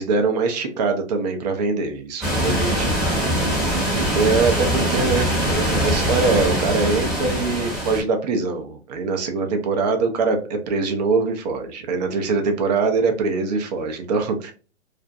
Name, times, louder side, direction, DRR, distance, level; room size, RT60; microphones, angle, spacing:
voice 1, 0.0-3.0 4.0-14.5, right 4 dB, 35° right, 5 dB, 0.5 m, -23 dB
sound 1, 2.2-8.0, equal, ahead, 0.8 m, -22 dB
2.4 x 2.0 x 2.5 m, 0.37 s
hypercardioid pair, 130°, 36 cm